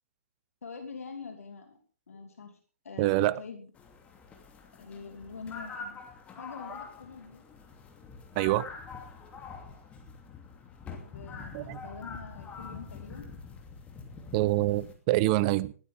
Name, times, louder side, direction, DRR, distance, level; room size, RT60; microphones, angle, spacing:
voice 1, 0.6-1.8 2.1-2.6 2.8-3.7 4.8-6.0 6.4-7.4 10.9-13.3, left 5 dB, 65° left, 2.6 m, -45 dB
voice 2, 3.0-3.3 8.4-8.7 11.5-11.8 14.3-15.7, right 17 dB, 30° right, 0.6 m, -25 dB
sound 1, 3.7-14.9, left 4 dB, 15° left, 2.7 m, -45 dB
19.5 x 13.0 x 3.5 m
figure-of-eight pair, 125°, 8 cm